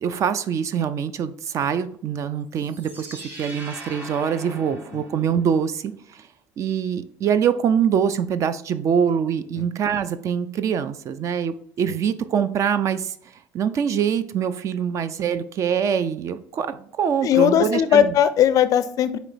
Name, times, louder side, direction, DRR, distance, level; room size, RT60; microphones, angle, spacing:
voice 1, 0.0-6.3 6.6-13.1 13.5-18.1, right 7 dB, 45° right, 12 dB, 0.4 m, -24 dB
sound 1, 2.5-5.6, right 2 dB, 20° right, 1.7 m, -40 dB
voice 2, 17.2-19.2, left 9 dB, 50° left, 13 dB, 0.4 m, -18 dB
4.3 x 3.0 x 3.9 m, 0.62 s
supercardioid pair, 110°, 8 cm